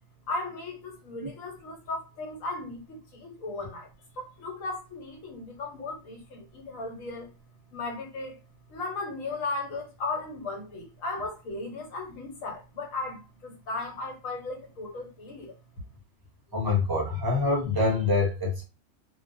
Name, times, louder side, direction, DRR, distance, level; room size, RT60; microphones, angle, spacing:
voice 1, 0.3-3.9 4.2-7.3 7.7-8.4 8.7-15.6, left 3 dB, 75° left, 1.2 m, -36 dB
voice 2, 16.5-18.6, left 3 dB, 35° right, 0.4 m, -25 dB
2.4 x 2.2 x 2.5 m
omnidirectional pair, 1.4 m